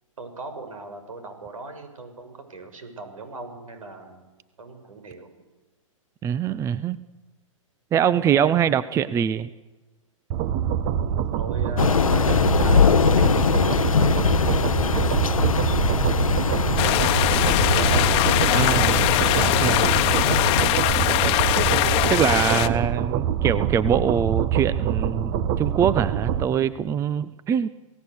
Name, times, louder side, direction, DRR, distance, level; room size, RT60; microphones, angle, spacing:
voice 1, 0.2-4.2 4.6-5.3 11.0-18.1 22.3-23.0, right 3 dB, 80° right, 7 dB, 6.6 m, -39 dB
voice 2, 6.2-7.0 7.9-9.5 18.5-19.1 19.4-20.1 22.1-27.7, right 8 dB, 15° right, 16 dB, 0.7 m, -23 dB
sound 1, 10.3-26.4, right 9 dB, 35° right, 1.2 m, -25 dB
Thunder / Rain, 11.8-20.7, left 7 dB, 85° left, 0.8 m, -22 dB
sound 2, 16.8-22.7, left 16 dB, 35° left, 1.4 m, -22 dB
28.0 x 18.0 x 8.3 m, 1.2 s
hypercardioid pair, 125°, 17 cm